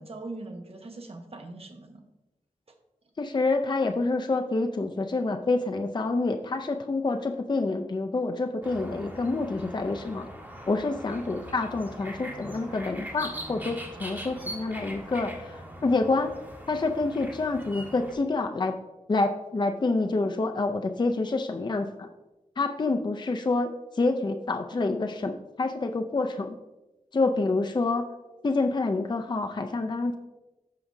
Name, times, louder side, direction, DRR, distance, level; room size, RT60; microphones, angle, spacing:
voice 1, 0.0-2.0, right 2 dB, 45° right, 4 dB, 1.1 m, -41 dB
voice 2, 3.2-10.3 10.7-16.3 16.7-18.8 19.1-22.1 22.6-26.6 27.1-28.1 28.4-30.2, left 3 dB, 35° left, 5 dB, 0.5 m, -27 dB
sound 1, 8.6-18.1, equal, 15° right, 1.7 m, -41 dB
14.5 x 4.9 x 2.7 m, 1.0 s
wide cardioid pair, 105°, 14 cm